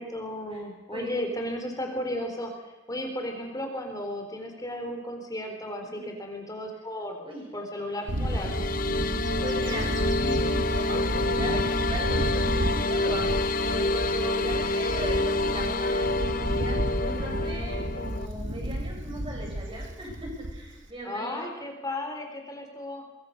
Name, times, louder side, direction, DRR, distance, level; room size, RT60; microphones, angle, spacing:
voice 1, 0.0-7.3 7.5-8.7 21.0-23.0, left 1 dB, 20° left, 3 dB, 3.8 m, -34 dB
voice 2, 0.9-1.2 6.0-6.1 7.2-7.4 9.4-21.5, right 1 dB, 25° right, -1 dB, 7.8 m, -38 dB
sound 1, 8.1-18.3, left 2 dB, 45° left, 1.1 m, -28 dB
Bird / Wind, 8.1-20.9, equal, 70° right, 2.2 m, -32 dB
24.5 x 21.0 x 6.6 m, 1.1 s
head